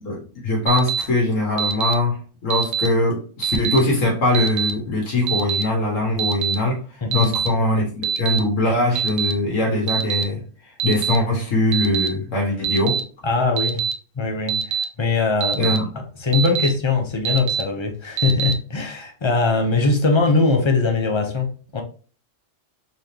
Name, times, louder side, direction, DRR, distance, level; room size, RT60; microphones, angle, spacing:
voice 1, 0.0-6.8 7.1-10.4 10.8-13.0 15.6-15.9, left 2 dB, 85° left, 1.7 m, -21 dB
Alarm, 0.7-1.0 1.6-1.9 2.5-2.9 3.4-3.8 4.3-4.7 5.3-5.6 6.2-6.6 7.1-7.5 8.0-8.4 9.0-9.3 9.9-10.2 10.8-11.2 11.7-12.1 12.6-13.0 13.6-13.9 14.5-14.8 15.4-15.8 16.3-16.7 17.3-17.6 18.2-18.5, right 7 dB, 85° right, 1.0 m, -23 dB
voice 2, 7.0-7.3 13.2-13.8 14.2-15.6 15.9-21.8, left 3 dB, 30° left, 0.6 m, -21 dB
4.0 x 3.4 x 2.8 m
omnidirectional pair, 1.3 m